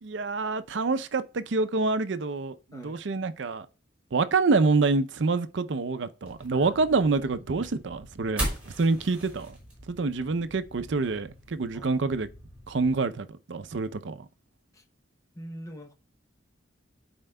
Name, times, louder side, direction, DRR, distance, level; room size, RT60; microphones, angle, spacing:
voice 1, 0.0-3.7 4.1-9.6 9.9-12.3 12.7-14.3, right 3 dB, 70° right, 0.5 m, -27 dB
sound 1, 6.2-13.0, right 1 dB, 10° right, 4.2 m, -39 dB
voice 2, 6.5-6.8 11.7-12.0 14.7-14.8 15.3-15.9, equal, 20° left, 0.7 m, -44 dB
12.5 x 4.4 x 2.2 m
head